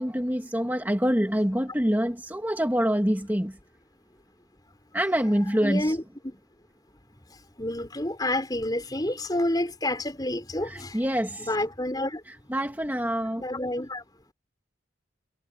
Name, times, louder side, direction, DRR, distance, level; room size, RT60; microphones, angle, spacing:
voice 1, 0.0-3.6 4.9-6.0 10.6-11.5 12.5-13.4, equal, 10° right, 2.5 m, -26 dB
voice 2, 5.6-6.0 7.6-11.0 11.4-12.2 13.4-14.0, left 1 dB, 20° left, 5.4 m, -29 dB
head